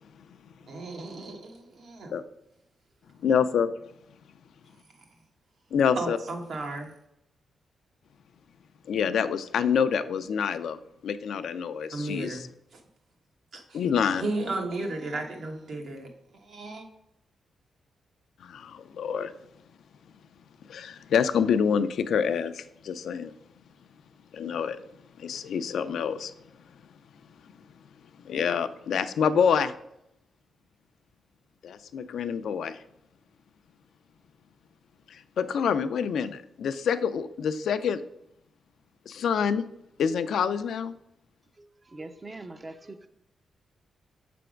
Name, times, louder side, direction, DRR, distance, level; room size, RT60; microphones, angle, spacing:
voice 1, 0.7-2.1 6.0-6.9 11.9-12.4 12.7-12.8 13.5-16.1 16.4-16.8, right 2 dB, 65° right, 3 dB, 1.2 m, -34 dB
voice 2, 3.2-3.7 5.7-6.2 8.9-12.5 13.7-14.3 18.4-19.3 20.7-23.3 24.3-24.8 25.2-26.3 28.2-29.7 31.6-32.8 35.1-38.0 39.1-39.6 40.0-41.0, left 7 dB, 80° left, 11 dB, 0.4 m, -27 dB
voice 3, 41.6-43.1, right 2 dB, 25° right, 9 dB, 0.5 m, -43 dB
6.9 x 3.4 x 5.0 m, 0.79 s
cardioid pair, 115°, 0 cm